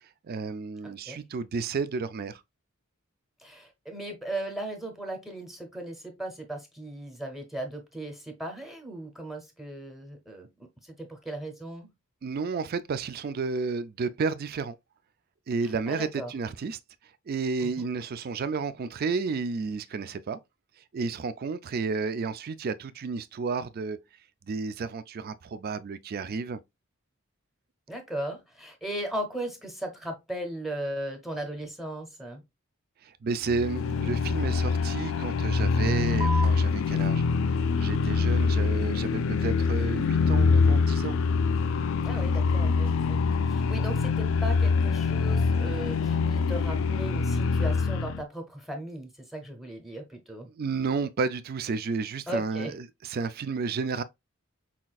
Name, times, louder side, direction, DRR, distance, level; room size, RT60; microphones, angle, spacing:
voice 1, 0.3-2.4 12.2-14.8 15.5-16.8 17.3-20.4 20.9-24.0 24.5-26.6 33.2-37.3 37.8-41.2 50.6-52.7 53.1-54.0, right 4 dB, 45° right, 0.4 m, -31 dB
voice 2, 0.8-1.3 3.4-10.5 10.8-11.9 15.6-16.3 17.6-17.9 27.9-32.4 42.0-43.2 43.5-50.5 52.3-52.7, right 1 dB, ahead, 0.8 m, -37 dB
sound 1, 33.5-48.2, left 4 dB, 65° left, 0.4 m, -25 dB
sound 2, 36.2-43.2, right 2 dB, 30° right, 1.3 m, -43 dB
5.8 x 2.5 x 2.3 m
head